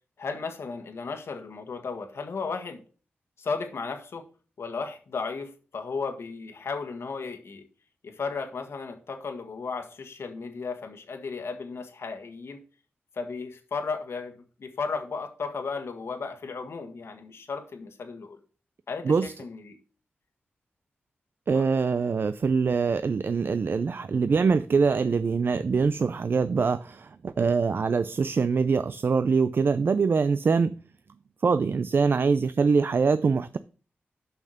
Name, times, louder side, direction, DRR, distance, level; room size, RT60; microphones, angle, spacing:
voice 1, 0.2-2.8 3.4-4.2 4.6-7.6 8.0-12.6 13.1-18.4 18.9-19.8 21.5-21.6, left 4 dB, 75° left, 1.6 m, -35 dB
voice 2, 21.5-30.7 31.4-33.6, right 5 dB, 55° right, 0.4 m, -24 dB
7.1 x 5.7 x 6.4 m
wide cardioid pair, 85°, 4 cm